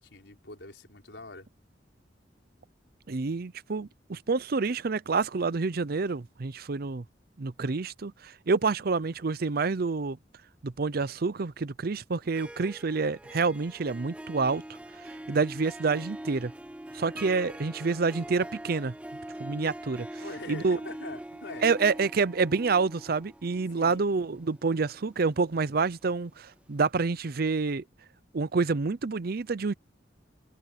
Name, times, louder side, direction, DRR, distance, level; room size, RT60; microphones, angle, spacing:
voice 1, 0.0-1.5 20.1-22.1 23.7-24.0, left 2 dB, 75° left, 5.3 m, -44 dB
voice 2, 3.1-7.0 7.4-10.2 10.6-16.5 16.9-18.9 19.4-20.2 20.5-20.8 21.6-27.8 28.3-29.7, right 4 dB, 55° right, 0.6 m, -28 dB
Harp, 12.1-26.1, right 1 dB, 5° right, 0.6 m, -43 dB
head